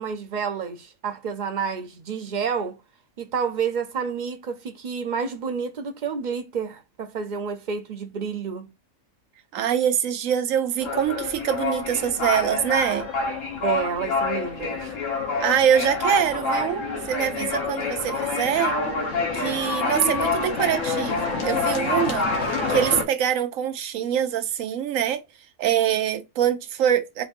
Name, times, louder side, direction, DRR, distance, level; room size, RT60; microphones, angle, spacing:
voice 1, 0.0-2.8 3.2-8.7 13.6-14.9 17.4-17.5, right 6 dB, 50° right, 0.6 m, -29 dB
voice 2, 9.5-13.1 15.4-18.8 19.3-22.3 22.7-25.2 25.6-27.3, right 9 dB, 90° right, 1.1 m, -24 dB
sound 1, 10.8-23.0, left 3 dB, 75° left, 1.5 m, -27 dB
4.3 x 3.9 x 2.5 m
omnidirectional pair, 1.3 m